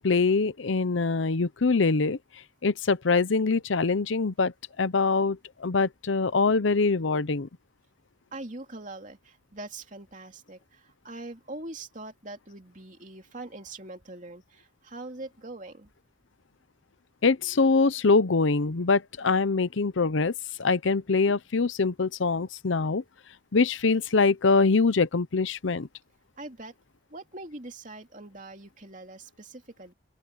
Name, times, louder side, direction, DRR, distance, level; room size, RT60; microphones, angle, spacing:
voice 1, 0.0-2.2 2.6-7.5 17.2-20.3 20.6-23.0 23.5-25.9, left 4 dB, 80° left, 0.7 m, -24 dB
voice 2, 8.3-15.9 26.4-26.8 27.1-29.9, right 2 dB, 40° right, 2.9 m, -42 dB
open air
head